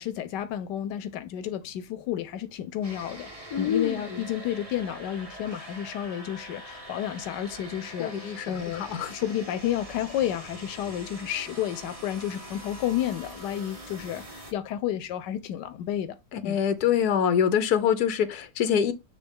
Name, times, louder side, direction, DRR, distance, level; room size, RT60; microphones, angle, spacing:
voice 1, 0.0-16.2 16.4-16.6, left 11 dB, 85° left, 1.3 m, -31 dB
sound 1, 2.8-14.5, right 1 dB, 20° right, 1.8 m, -44 dB
voice 2, 3.5-4.2 8.0-9.1 16.3-18.9, left 8 dB, 65° left, 1.4 m, -25 dB
7.8 x 3.4 x 5.3 m
omnidirectional pair, 1.8 m